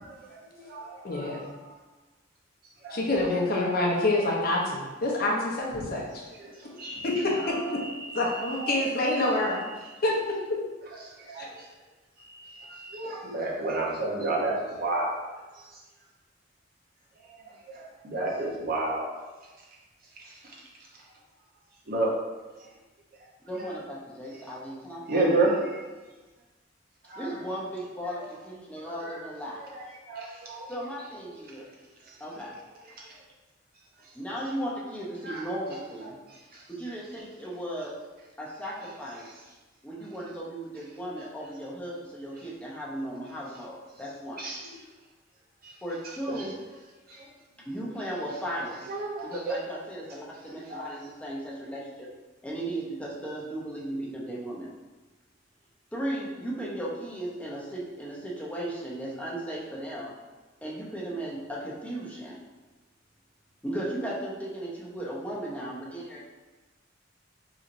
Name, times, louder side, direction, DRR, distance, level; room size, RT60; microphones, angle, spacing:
voice 1, 0.3-1.4 2.8-3.0 3.8-4.0 6.8-7.2 7.6-7.9 8.3-8.9 11.3-11.5 12.3-15.2 17.7-19.1 21.9-22.1 25.1-25.9 27.1-27.3 29.0-29.1 30.1-30.7 35.3-35.4 44.4-44.7 45.6-45.7 47.1-47.2 48.9-49.6 50.7-50.9, right 2 dB, 50° right, -3 dB, 0.8 m, -30 dB
voice 2, 1.0-1.4 2.9-6.0 7.0-7.6 8.2-9.6 10.0-10.1 11.4-11.5, left 2 dB, 50° left, -2 dB, 0.7 m, -26 dB
voice 3, 23.5-25.7 27.1-29.6 30.7-31.7 32.2-32.6 34.1-36.2 36.7-37.9 38.4-39.3 39.8-44.5 45.8-46.5 47.6-48.9 49.2-52.1 52.4-54.7 55.9-60.2 60.6-62.4 63.6-66.2, right 1 dB, 5° left, -5 dB, 0.7 m, -36 dB
4.1 x 2.9 x 2.5 m, 1.2 s
head